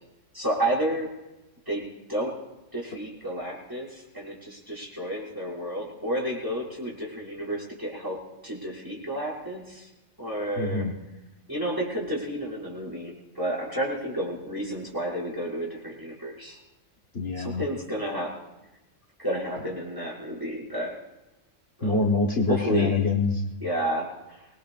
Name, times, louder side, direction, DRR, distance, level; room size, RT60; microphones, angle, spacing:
voice 1, 0.3-1.1 1.7-2.3 2.7-9.9 10.2-10.9 11.5-16.6 17.4-18.3 19.2-20.9 21.8-22.0 22.5-22.9 23.6-24.5, right 1 dB, 15° right, -5 dB, 6.1 m, -31 dB
voice 2, 10.6-10.9 17.1-17.6 21.8-23.5, left 3 dB, 55° left, 0 dB, 1.7 m, -25 dB
25.0 x 21.0 x 2.5 m, 0.97 s
omnidirectional pair, 1.3 m